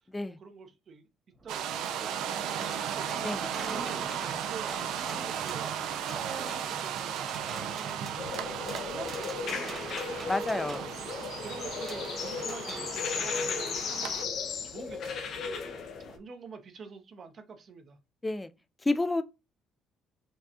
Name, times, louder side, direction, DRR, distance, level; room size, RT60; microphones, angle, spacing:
voice 1, 0.2-1.0 1.4-7.3 7.6-10.2 11.2-18.0, right 5 dB, 50° right, 0.7 m, -47 dB
sound 1, 1.4-13.9 15.1-15.2 15.5-15.6, right 3 dB, 30° right, 1.2 m, -45 dB
sound 2, 1.5-14.3, right 9 dB, 80° right, 0.4 m, -36 dB
sound 3, 8.2-16.2, left 5 dB, 60° left, 0.6 m, -36 dB
voice 2, 10.3-10.9 18.2-18.5 18.8-19.2, left 2 dB, 15° left, 0.4 m, -30 dB
4.5 x 2.3 x 2.8 m
cardioid pair, 95°, 0 cm